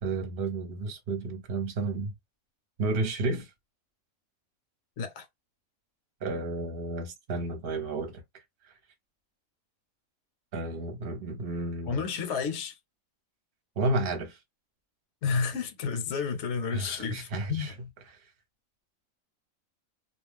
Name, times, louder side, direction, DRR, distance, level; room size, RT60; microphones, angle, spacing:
voice 1, 0.0-2.1 2.8-3.5 6.2-8.7 10.5-12.0 13.8-14.4 16.7-17.7, right 2 dB, 45° right, 1.0 m, -32 dB
voice 2, 5.0-5.3 11.9-12.7 15.2-17.7, left 5 dB, 60° left, 1.0 m, -31 dB
2.4 x 2.3 x 3.3 m
omnidirectional pair, 1.5 m